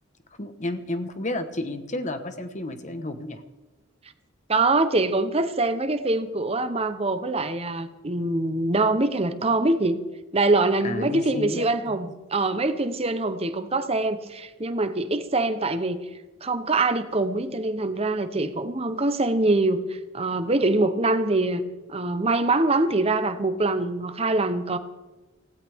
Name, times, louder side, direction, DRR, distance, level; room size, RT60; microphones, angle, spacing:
voice 1, 0.4-3.4 10.8-12.0, left 2 dB, 35° left, 9 dB, 1.3 m, -31 dB
voice 2, 4.5-10.0 10.3-16.0 16.4-19.8 20.1-21.6 21.9-24.8, right 2 dB, 30° right, 10 dB, 0.9 m, -24 dB
23.5 x 17.0 x 3.6 m, 1.2 s
head